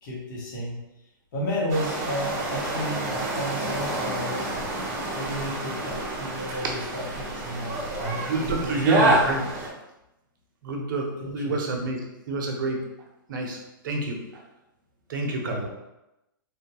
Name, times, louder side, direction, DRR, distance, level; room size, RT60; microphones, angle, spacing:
voice 1, 0.0-0.8 1.3-4.5 5.1-9.4 11.2-11.6 15.4-15.7, equal, 60° left, -6 dB, 1.1 m, -32 dB
sound 1, 1.7-9.7, right 2 dB, 25° right, 0.8 m, -28 dB
voice 2, 8.3-9.5 10.6-12.0 12.3-12.8 13.3-13.6 13.8-14.4 15.1-15.7, right 3 dB, 65° right, 1 dB, 0.7 m, -27 dB
3.5 x 2.2 x 2.9 m, 0.93 s
hypercardioid pair, 145°, 12 cm